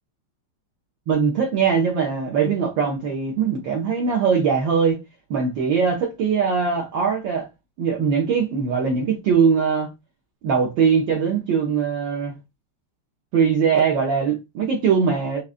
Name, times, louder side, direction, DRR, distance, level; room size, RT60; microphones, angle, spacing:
voice 1, 1.1-5.0 5.3-7.4 7.8-9.9 10.4-12.4 13.3-15.4, right 6 dB, 70° right, 1.3 m, -21 dB
4.9 x 2.2 x 2.5 m
omnidirectional pair, 2.3 m